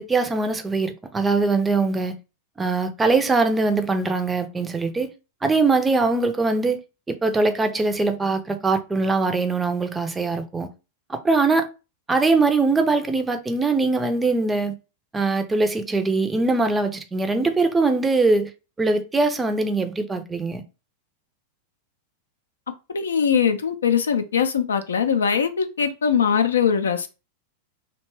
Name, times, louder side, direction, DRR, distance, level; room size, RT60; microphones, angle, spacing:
voice 1, 0.0-2.2 2.6-5.1 5.4-6.8 7.1-10.7 11.1-11.7 12.1-14.8 15.1-18.5 18.8-20.6, right 3 dB, 10° right, 0.5 m, -22 dB
voice 2, 22.9-27.1, left 7 dB, 70° left, 0.4 m, -21 dB
2.7 x 2.2 x 3.0 m
figure-of-eight pair, 90°, 0 cm